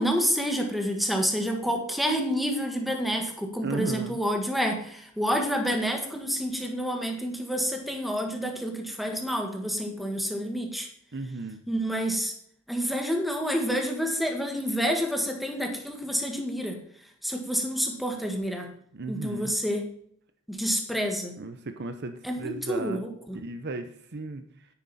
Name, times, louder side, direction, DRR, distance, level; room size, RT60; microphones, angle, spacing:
voice 1, 0.0-10.9 11.7-12.3 12.7-16.8 17.2-18.7 19.1-19.9 20.5-21.3 22.2-23.4, equal, ahead, 3 dB, 1.6 m, -28 dB
voice 2, 3.6-4.2 11.1-11.6 18.9-19.5 21.4-23.0 23.3-24.7, right 3 dB, 55° right, 9 dB, 0.8 m, -35 dB
10.0 x 9.0 x 4.2 m, 0.64 s
head